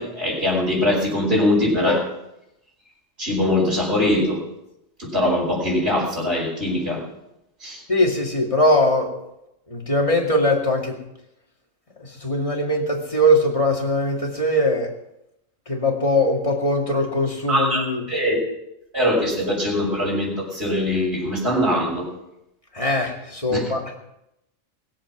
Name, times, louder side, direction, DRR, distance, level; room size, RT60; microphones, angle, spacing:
voice 1, 0.0-2.1 3.2-4.4 5.0-7.0 7.6-7.8 17.5-18.4 18.9-22.1 23.5-23.6, left 1 dB, 55° right, -9 dB, 5.6 m, -22 dB
voice 2, 7.9-9.1 9.7-11.0 12.0-14.9 15.7-18.1 22.7-23.9, left 1 dB, 25° left, 0 dB, 2.3 m, -21 dB
21.0 x 7.7 x 6.0 m, 0.84 s
omnidirectional pair, 1.3 m